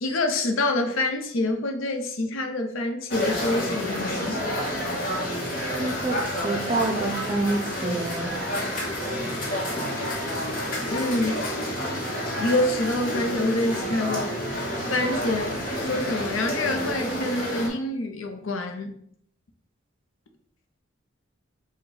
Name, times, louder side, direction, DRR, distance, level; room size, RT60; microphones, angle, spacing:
voice 1, 0.0-4.4 10.8-11.5 12.4-14.3 14.9-18.9, left 2 dB, 80° left, 5 dB, 0.6 m, -26 dB
sound 1, 3.1-17.7, equal, 45° left, 1.0 m, -29 dB
voice 2, 5.8-8.3, right 2 dB, 25° right, 2 dB, 0.5 m, -28 dB
4.8 x 2.2 x 3.9 m, 0.67 s
head